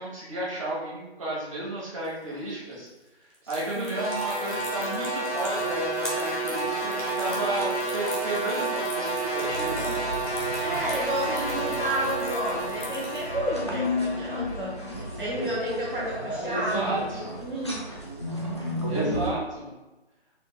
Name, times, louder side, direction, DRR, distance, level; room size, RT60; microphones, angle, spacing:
voice 1, 0.0-2.9 3.5-10.0 16.4-17.3 18.9-19.7, right 1 dB, 30° right, -6 dB, 1.4 m, -32 dB
sound 1, 2.0-13.7, left 1 dB, 50° left, 1.4 m, -43 dB
sound 2, 3.9-16.2, right 2 dB, 90° left, 1.3 m, -31 dB
sound 3, 9.4-19.3, left 1 dB, 25° left, 0.5 m, -33 dB
voice 2, 10.6-17.0 17.4-17.8, right 1 dB, 50° right, -5 dB, 0.9 m, -31 dB
5.1 x 4.5 x 2.2 m, 1.1 s
figure-of-eight pair, 155°, 33 cm